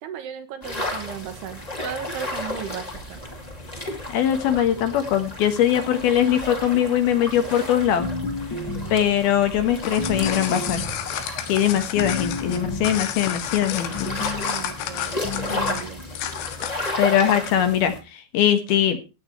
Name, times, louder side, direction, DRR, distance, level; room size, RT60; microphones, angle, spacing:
voice 1, 0.0-3.2 14.5-16.0, right 9 dB, 70° right, 9 dB, 2.9 m, -36 dB
sound 1, 0.6-18.0, left 2 dB, 20° left, 1.2 m, -33 dB
voice 2, 4.1-8.1 8.9-10.8 11.5-14.1 17.0-19.0, left 10 dB, 65° left, 8 dB, 3.0 m, -21 dB
sound 2, 8.0-9.1 10.0-11.1 12.0-13.1 13.9-14.5 15.2-15.8, left 2 dB, 45° left, 1.5 m, -30 dB
sound 3, 9.7-17.0, left 10 dB, 85° left, 3.8 m, -31 dB
15.0 x 9.3 x 4.5 m, 0.30 s
omnidirectional pair, 5.2 m